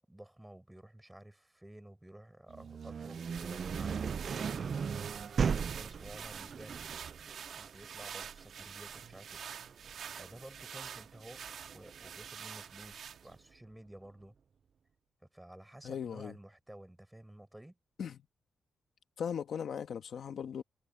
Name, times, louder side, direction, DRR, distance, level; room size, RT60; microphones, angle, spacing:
voice 1, 0.1-4.2 5.1-6.9 7.5-9.4 9.7-9.9 10.1-11.4 11.7-14.3 15.2-17.8, right 1 dB, 5° right, 4.6 m, -52 dB
sound 1, 2.5-12.3, right 6 dB, 45° right, 0.3 m, -38 dB
sound 2, 2.8-13.5, right 7 dB, 65° right, 2.8 m, -47 dB
voice 2, 15.8-16.3 18.0-18.2 19.2-20.6, left 7 dB, 60° left, 1.4 m, -38 dB
wide cardioid pair, 165°, 0 cm